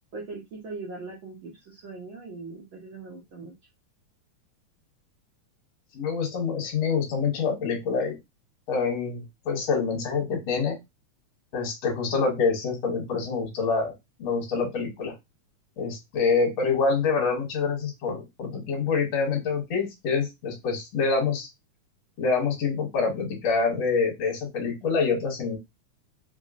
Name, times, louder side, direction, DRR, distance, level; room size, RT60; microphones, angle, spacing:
voice 1, 0.1-3.5, right 3 dB, 85° right, -2 dB, 1.1 m, -40 dB
voice 2, 5.9-8.2 8.7-10.8 11.5-13.9 14.2-15.1 15.8-21.5 22.2-25.6, left 5 dB, 60° left, 0 dB, 2.1 m, -26 dB
5.3 x 2.1 x 2.4 m, 0.20 s
omnidirectional pair, 3.5 m